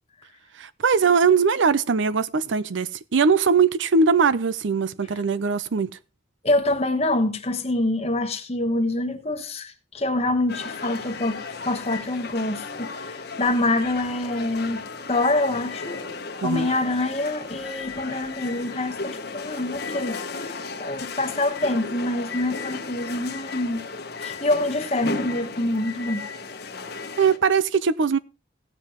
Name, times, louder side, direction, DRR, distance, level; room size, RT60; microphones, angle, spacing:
voice 1, 0.6-5.9 16.4-16.7 27.2-28.2, right 5 dB, 75° right, 0.5 m, -21 dB
voice 2, 6.4-14.8 15.1-23.8 24.2-26.2, left 2 dB, 30° left, 1.1 m, -26 dB
sound 1, 10.5-27.4, left 4 dB, 55° left, 1.1 m, -35 dB
17.5 x 7.6 x 3.0 m
head